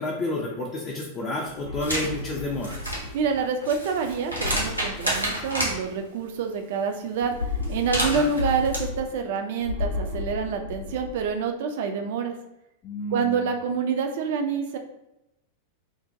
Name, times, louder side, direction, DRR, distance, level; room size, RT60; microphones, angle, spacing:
voice 1, 0.0-3.0 8.0-8.3 12.8-13.5, left 2 dB, 30° left, -3 dB, 0.4 m, -31 dB
sound 1, 1.5-3.4 4.3-5.8 7.1-9.3 9.6-11.3, left 3 dB, 90° left, 0.6 m, -33 dB
sound 2, 1.8-2.1 2.5-5.7 7.6-8.8, right 1 dB, 90° right, 0.6 m, -29 dB
voice 2, 3.1-7.3 7.7-12.3 13.1-14.8, right 5 dB, 55° right, 5 dB, 0.3 m, -27 dB
2.6 x 2.1 x 2.6 m, 0.88 s
figure-of-eight pair, 90°, 0 cm